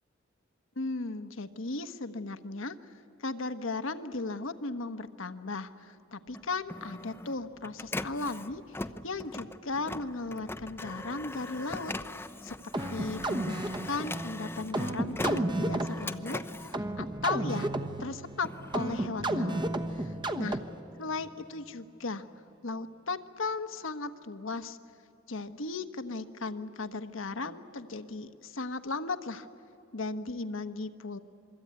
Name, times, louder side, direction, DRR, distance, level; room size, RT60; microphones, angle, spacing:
voice 1, 0.8-2.7 3.2-8.8 9.0-11.9 12.4-12.5 12.9-16.4 16.7-17.7 18.0-19.6 19.9-20.6 21.0-22.2 22.6-24.8 25.3-29.5 29.9-31.2, left 3 dB, 70° left, 10 dB, 1.2 m, -36 dB
Printer, 6.3-17.7 18.2-20.0, left 2 dB, 10° left, 0.6 m, -41 dB
sound 1, 12.7-20.9, right 1 dB, 25° right, 1.1 m, -33 dB
27.5 x 22.0 x 9.5 m, 2.8 s
head